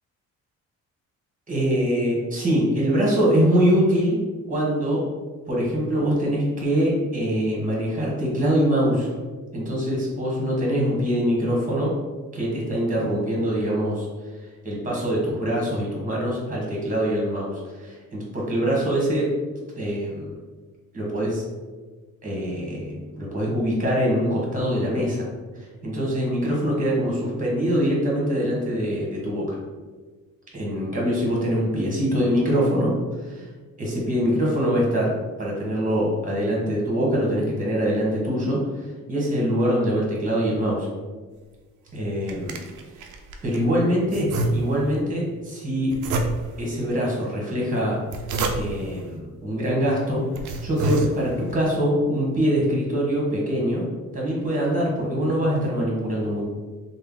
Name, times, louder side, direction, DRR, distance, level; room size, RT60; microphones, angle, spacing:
voice 1, 1.5-4.2 4.5-5.0 5.5-9.1 9.5-11.9 12.3-14.1 14.6-19.3 19.8-20.3 20.9-21.4 22.2-25.3 25.5-29.6 30.5-32.9 33.2-33.5 33.8-35.1 35.4-40.9 41.9-42.6 43.4-45.9 46.6-48.0 48.5-50.2 50.6-53.8 54.1-56.4, equal, 25° right, -3 dB, 1.3 m, -23 dB
sound 1, 41.9-43.7 44.1-45.0 45.9-46.7 47.9-48.9 49.7-49.8 50.2-51.6, right 2 dB, 85° right, 0.5 m, -28 dB
3.3 x 2.1 x 3.7 m, 1.3 s
cardioid pair, 90°, 30 cm